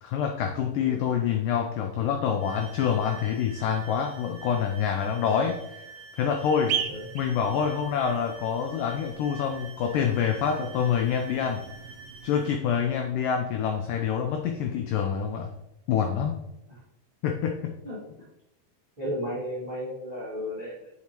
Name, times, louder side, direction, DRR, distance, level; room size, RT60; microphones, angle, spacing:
voice 1, 0.0-5.8 6.2-6.8 7.2-11.6 12.2-15.5 15.9-16.4 17.2-17.8, left 7 dB, 85° left, 4 dB, 1.9 m, -26 dB
sound 1, 2.4-12.6, right 4 dB, 60° right, 2.1 m, -48 dB
sound 2, 6.6-12.5, right 9 dB, 85° right, 1.9 m, -38 dB
voice 2, 17.8-18.3 19.0-20.9, equal, 25° right, -8 dB, 1.4 m, -34 dB
8.5 x 4.7 x 2.9 m, 0.86 s
omnidirectional pair, 4.4 m